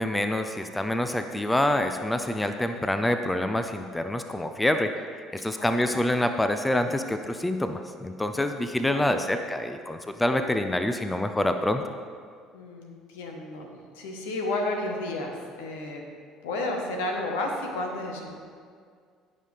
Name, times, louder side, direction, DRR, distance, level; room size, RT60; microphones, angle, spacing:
voice 1, 0.0-4.9 5.3-11.8, left 1 dB, 10° left, 7 dB, 0.6 m, -26 dB
voice 2, 5.6-5.9 8.8-9.1 12.5-16.0 16.4-18.3, left 2 dB, 75° left, 2 dB, 1.4 m, -32 dB
15.5 x 5.7 x 3.5 m, 2.1 s
hypercardioid pair, 60°, 0 cm